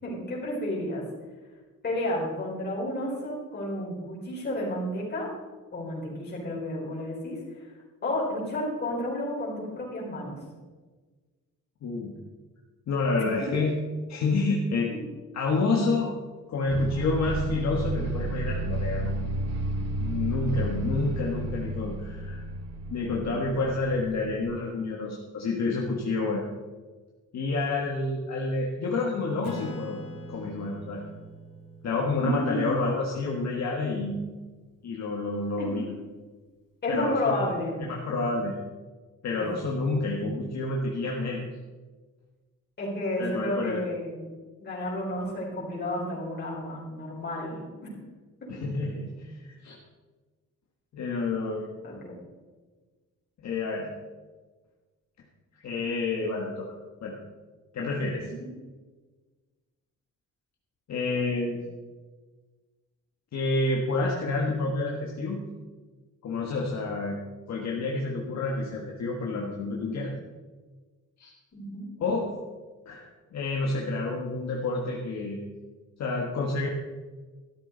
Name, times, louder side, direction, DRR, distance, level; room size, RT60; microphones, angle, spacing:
voice 1, 0.0-1.0 1.8-5.3 5.7-7.7 8.0-10.4 13.4-13.5 14.9-15.0 32.2-32.6 35.6-35.7 36.8-37.8 39.3-39.5 42.8-44.3 44.6-47.9 48.4-48.5 51.6-52.1 58.2-58.5 71.5-71.9, left 1 dB, 30° left, -4 dB, 4.5 m, -31 dB
voice 2, 11.8-12.1 12.9-13.7 14.1-14.9 15.3-16.1 16.5-19.2 20.0-22.4 22.9-26.4 27.3-30.0 30.3-31.0 31.8-34.2 34.8-35.9 36.9-37.3 37.8-38.6 39.2-41.4 43.2-43.8 48.5-49.8 50.9-51.6 53.4-53.9 55.6-56.7 57.0-57.1 57.7-58.2 60.9-61.6 63.3-65.4 66.2-67.2 67.5-70.1 71.2-71.3 72.0-72.3 72.8-75.4 76.0-76.7, left 3 dB, 55° left, -2 dB, 1.6 m, -29 dB
sound 1, 16.7-24.6, right 2 dB, 50° right, 1.0 m, -32 dB
Acoustic guitar / Strum, 29.4-34.4, left 1 dB, 90° left, 2.7 m, -44 dB
14.0 x 12.5 x 4.0 m, 1.3 s
wide cardioid pair, 170°, 32 cm